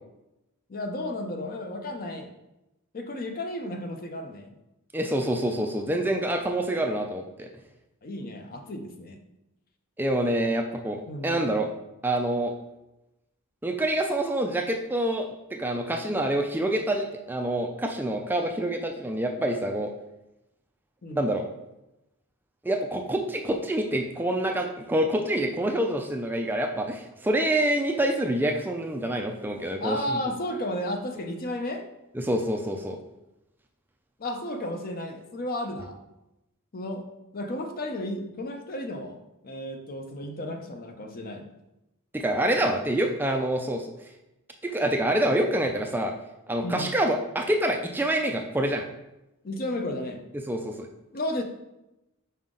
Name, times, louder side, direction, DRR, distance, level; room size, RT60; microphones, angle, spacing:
voice 1, 0.7-2.3 2.9-4.5 8.0-9.2 11.1-11.5 21.0-21.4 29.8-31.8 34.2-36.0 36.7-37.1 37.3-41.5 46.6-47.0 49.4-50.2 51.1-51.4, left 1 dB, 40° left, 5 dB, 0.7 m, -33 dB
voice 2, 4.9-7.5 10.0-11.7 12.0-12.5 13.6-19.9 21.1-21.4 22.6-30.0 32.1-33.0 42.1-43.9 44.6-46.1 46.5-48.8 50.5-50.9, right 1 dB, 10° right, 3 dB, 0.4 m, -26 dB
5.6 x 4.9 x 3.8 m, 0.93 s
head